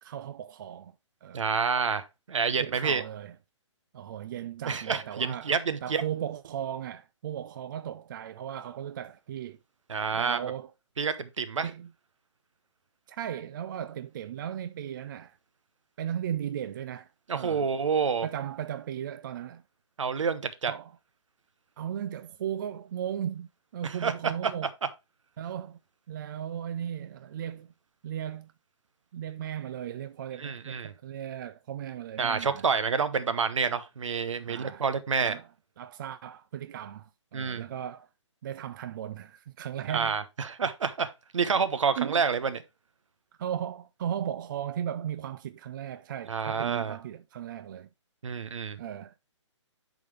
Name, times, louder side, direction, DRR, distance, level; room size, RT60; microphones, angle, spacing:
voice 1, 0.0-0.9 1.2-1.4 2.5-3.3 3.9-5.6 5.8-9.6 10.1-10.7 11.6-11.9 13.1-15.4 16.0-17.7 18.2-19.6 20.7-21.0 21.8-24.7 25.4-25.8 26.1-27.7 28.0-28.5 29.1-32.7 34.5-34.9 35.2-35.5 35.8-38.1 38.4-40.2 42.0-42.2 43.4-47.9 48.8-49.1, right 10 dB, 40° right, 0.4 m, -36 dB
voice 2, 1.3-3.0 4.7-6.0 9.9-10.4 11.0-11.7 17.3-18.3 20.0-20.7 23.8-24.1 30.4-30.9 32.2-35.4 37.3-37.7 39.9-42.5 46.3-47.0 48.2-48.8, right 5 dB, 75° right, 1.0 m, -28 dB
10.5 x 3.9 x 3.2 m
hypercardioid pair, 145°, 16 cm